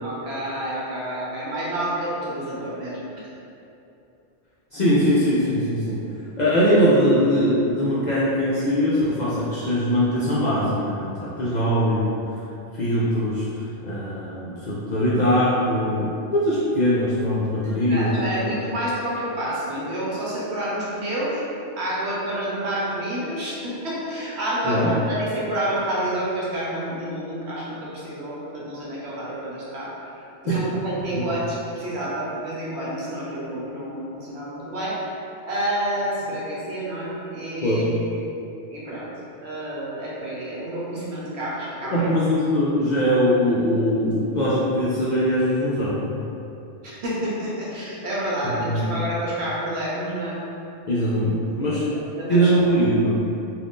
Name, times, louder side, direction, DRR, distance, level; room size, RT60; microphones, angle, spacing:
voice 1, 0.0-3.2 17.6-21.4 21.8-29.9 30.4-35.0 35.4-37.8 38.1-38.3 38.7-39.1 39.4-42.1 46.8-50.4 51.6-51.8 52.1-52.5, right 1 dB, 70° right, -7 dB, 1.0 m, -29 dB
voice 2, 4.7-6.0 6.4-12.1 12.7-13.5 13.8-18.6 24.6-24.9 30.5-30.6 31.1-31.3 37.6-37.9 41.9-46.2 48.4-48.9 50.9-51.8 52.3-53.2, equal, 60° left, -8 dB, 0.5 m, -21 dB
2.5 x 2.4 x 3.5 m, 2.8 s
omnidirectional pair, 1.2 m